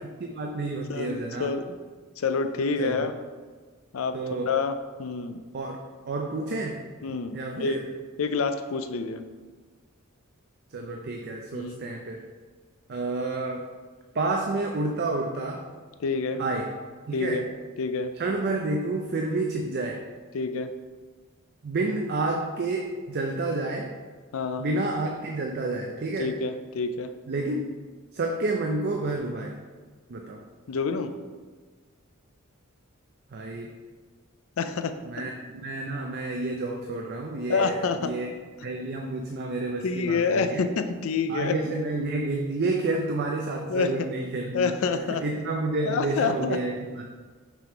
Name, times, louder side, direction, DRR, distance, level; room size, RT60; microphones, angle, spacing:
voice 1, 0.2-1.5 2.8-3.0 4.1-4.5 5.5-5.8 6.1-6.8 7.3-7.8 10.7-12.2 12.9-13.7 14.1-15.7 16.4-16.7 17.1-17.4 18.2-20.0 21.6-23.9 24.6-26.3 27.3-27.7 28.1-29.6 30.1-30.4 33.3-33.7 35.0-35.3 35.6-38.3 38.6-40.6 41.3-44.7 45.1-47.0, right 2 dB, 50° right, 1 dB, 0.5 m, -29 dB
voice 2, 0.9-1.6 2.2-3.1 3.9-4.2 4.5-5.4 7.0-7.8 8.2-9.2 11.5-11.9 16.0-16.4 17.1-17.4 17.8-18.1 20.3-20.7 24.3-24.7 26.2-27.1 30.7-31.1 34.6-34.9 37.5-38.1 39.8-41.5 43.7-43.9 44.5-45.2 45.9-46.6, left 4 dB, 70° left, 8 dB, 0.4 m, -27 dB
6.0 x 3.5 x 4.4 m, 1.5 s
head